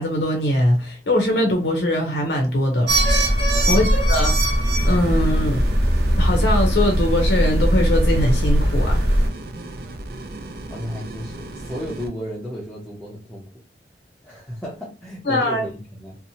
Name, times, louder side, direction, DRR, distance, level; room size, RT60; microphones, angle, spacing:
voice 1, 0.0-2.9 3.7-4.6 4.8-5.6 6.2-9.0 15.3-15.6, left 1 dB, 75° left, 0.7 m, -21 dB
sound 1, 2.9-9.3, equal, 75° right, 0.8 m, -19 dB
voice 2, 3.7-4.0 10.7-13.5 14.2-16.2, equal, 5° left, 0.6 m, -33 dB
sound 2, 4.8-12.1, right 2 dB, 55° right, 0.4 m, -36 dB
2.8 x 2.0 x 2.7 m
head